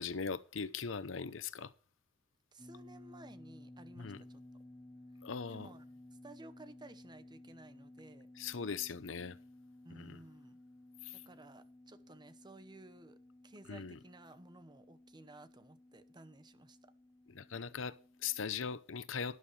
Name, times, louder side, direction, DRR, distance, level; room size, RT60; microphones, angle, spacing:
voice 1, 0.0-1.7 4.0-4.2 5.2-5.7 8.4-9.4 10.0-10.2 11.0-11.2 13.7-14.0 17.3-19.4, left 6 dB, 75° left, 0.7 m, -40 dB
voice 2, 2.5-4.4 5.5-8.3 9.8-10.6 11.1-13.2 13.4-16.9, right 2 dB, 20° right, 0.9 m, -56 dB
sound 1, 2.6-18.4, left 1 dB, 10° left, 0.7 m, -57 dB
12.5 x 11.5 x 3.3 m
head